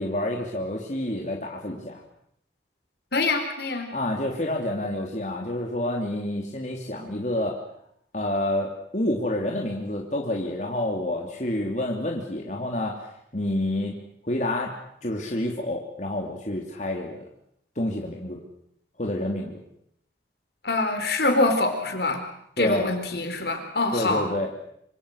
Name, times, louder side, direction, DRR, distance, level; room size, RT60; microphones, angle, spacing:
voice 1, 0.0-2.0 3.9-7.6 8.1-13.0 13.3-14.0 14.2-14.7 15.0-17.2 17.7-18.4 19.0-19.6 22.6-22.9 23.9-24.5, left 1 dB, 40° left, 0 dB, 3.0 m, -28 dB
voice 2, 3.1-3.9 20.6-22.2 22.6-24.2, left 2 dB, 65° left, 6 dB, 4.3 m, -24 dB
26.0 x 25.5 x 6.5 m, 0.72 s
head